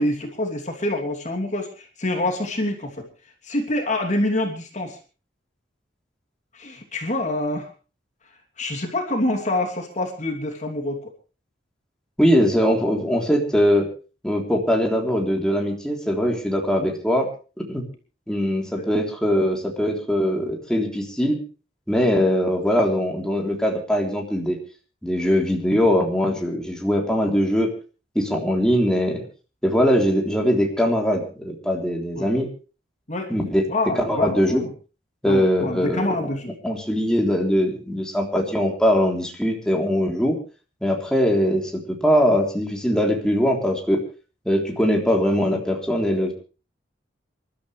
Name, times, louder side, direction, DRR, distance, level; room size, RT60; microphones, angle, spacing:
voice 1, 0.0-3.1 3.4-5.0 6.5-7.7 8.6-11.1 16.8-16.9 18.8-18.9 27.1-27.2 32.1-32.3 33.1-33.3 33.7-34.7 35.2-36.5, left 1 dB, 40° left, 2 dB, 3.0 m, -26 dB
voice 2, 12.2-13.9 14.2-17.3 17.6-17.9 18.3-21.4 21.9-24.6 25.0-27.7 28.2-29.2 29.6-32.5 33.3-33.6 34.0-34.7 35.2-36.2 36.6-40.4 40.8-44.0 44.5-46.3, equal, 5° left, 0 dB, 3.5 m, -21 dB
27.5 x 13.0 x 3.3 m, 0.35 s
head